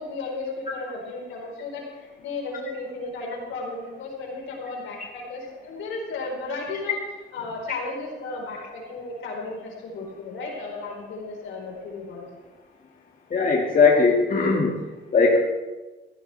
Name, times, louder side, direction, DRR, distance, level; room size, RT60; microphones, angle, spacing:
voice 1, 0.0-6.9 7.3-12.3, left 3 dB, 80° left, 0 dB, 4.6 m, -34 dB
voice 2, 13.3-15.4, left 4 dB, 40° left, -2 dB, 2.2 m, -19 dB
15.5 x 15.5 x 3.5 m, 1.2 s
cardioid pair, 90°, 20 cm